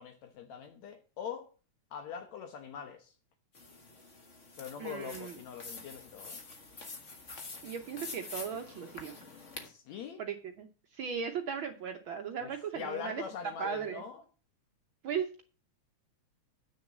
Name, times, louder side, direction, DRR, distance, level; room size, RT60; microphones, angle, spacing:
voice 1, 0.0-1.5 1.9-3.1 4.6-6.4 9.6-10.2 12.4-14.2, left 7 dB, 70° left, 2.3 m, -43 dB
sound 1, 3.5-9.7, left 3 dB, 40° left, 1.1 m, -47 dB
voice 2, 4.8-5.3 7.6-9.2 10.2-10.7 10.9-13.2 13.6-14.0 15.0-15.4, right 7 dB, 70° right, 1.2 m, -37 dB
8.8 x 6.5 x 7.2 m
omnidirectional pair, 3.3 m